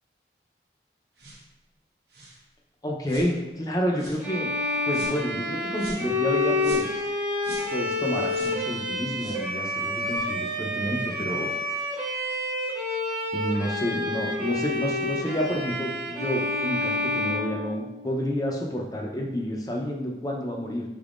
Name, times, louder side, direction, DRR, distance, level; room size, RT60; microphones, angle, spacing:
sound 1, 1.2-1.5 2.1-2.4 3.0-3.3 3.9-4.3 4.9-5.2 5.8-6.1 6.6-7.0 7.4-7.7 8.2-8.6 9.2-9.4 10.0-10.2, right 1 dB, 70° right, 1.1 m, -43 dB
voice 1, 2.8-4.5 4.9-7.1 7.7-11.5 13.3-20.8, equal, 20° left, -1 dB, 0.5 m, -29 dB
Bowed string instrument, 4.2-18.3, left 1 dB, 15° right, 0.8 m, -29 dB
5.4 x 3.5 x 2.5 m, 1.0 s
head